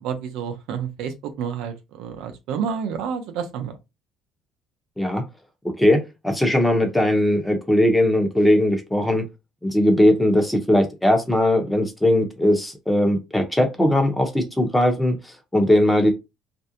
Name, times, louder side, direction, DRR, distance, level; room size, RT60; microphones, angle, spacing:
voice 1, 0.0-3.8, right 7 dB, 80° right, 0.5 m, -29 dB
voice 2, 5.8-9.2 9.6-16.1, left 1 dB, 5° left, 0.9 m, -19 dB
2.5 x 2.0 x 2.8 m
cardioid pair, 95°, 0 cm